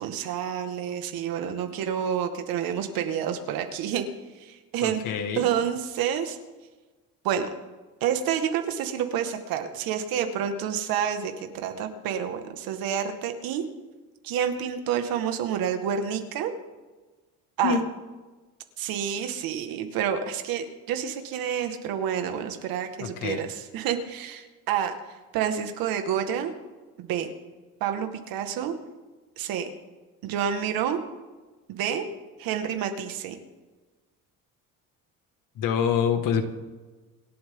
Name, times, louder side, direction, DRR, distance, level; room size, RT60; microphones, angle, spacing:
voice 1, 0.0-4.1 4.7-5.0 5.4-6.4 7.2-7.5 8.0-13.6 14.2-16.5 17.6-17.8 18.8-24.9 25.3-26.5 27.0-27.3 27.8-28.7 29.4-29.7 30.2-31.0 31.7-32.1 32.4-33.4, right 8 dB, 85° right, 6 dB, 2.0 m, -28 dB
voice 2, 4.8-5.5 17.6-17.8 23.0-23.4 35.6-36.4, left 7 dB, 65° left, 6 dB, 2.2 m, -26 dB
27.0 x 12.0 x 3.9 m, 1.3 s
cardioid pair, 150°, 34 cm